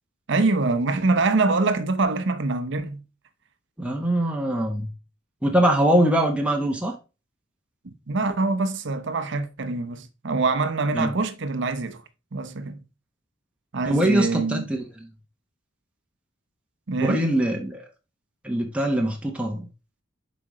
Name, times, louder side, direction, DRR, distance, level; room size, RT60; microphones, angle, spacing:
voice 1, 0.3-3.0 8.1-12.0 12.3-12.8 13.7-14.7 16.9-17.3, right 3 dB, 65° right, 0.8 m, -24 dB
voice 2, 3.8-4.9 5.4-6.9 10.9-11.1 13.9-14.8 17.0-17.8 18.4-19.7, right 1 dB, 5° right, 0.9 m, -22 dB
7.5 x 5.1 x 3.1 m
head